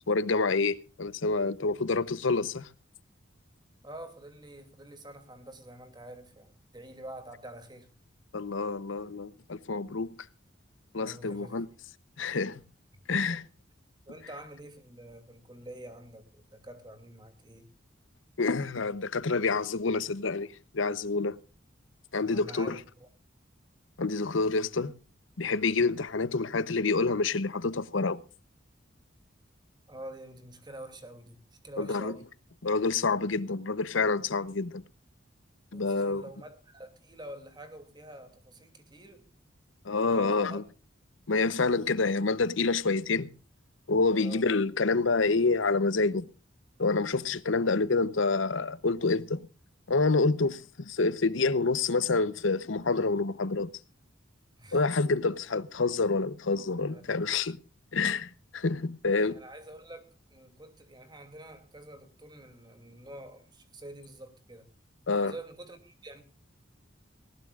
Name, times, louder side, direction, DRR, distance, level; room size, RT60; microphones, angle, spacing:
voice 1, 0.1-2.7 8.3-10.2 10.9-11.7 12.2-12.6 13.1-13.4 18.4-21.4 22.1-22.8 24.0-24.9 25.4-28.2 31.8-32.1 32.6-34.8 35.7-36.2 39.8-40.6 41.3-43.3 43.9-46.3 46.8-49.5 49.9-53.7 54.7-57.6 57.9-59.4 65.1-65.3, left 3 dB, 75° left, 0.9 m, -27 dB
voice 2, 3.8-7.9 11.0-11.6 13.3-13.4 14.1-17.7 22.2-23.1 29.9-31.4 31.6-32.2 35.7-39.3 40.0-40.6 44.2-44.5 54.6-54.8 56.9-57.2 59.2-64.7 65.2-66.2, right 1 dB, 20° right, 2.7 m, -47 dB
19.5 x 18.5 x 2.5 m
head